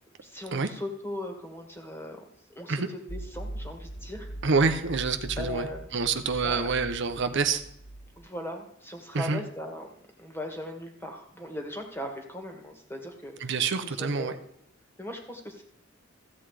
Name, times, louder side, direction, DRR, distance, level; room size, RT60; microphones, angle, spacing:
voice 1, 0.2-2.3 2.6-4.3 5.4-5.9 6.4-6.7 8.2-9.9 10.2-13.6 13.8-14.4 15.0-15.6, left 1 dB, 10° left, 3 dB, 1.8 m, -39 dB
sound 1, 3.1-8.3, right 1 dB, 40° left, 2.1 m, -41 dB
voice 2, 4.4-7.6 9.1-9.4 13.4-14.3, right 4 dB, 60° right, 8 dB, 0.8 m, -27 dB
14.5 x 8.0 x 4.8 m, 0.73 s
head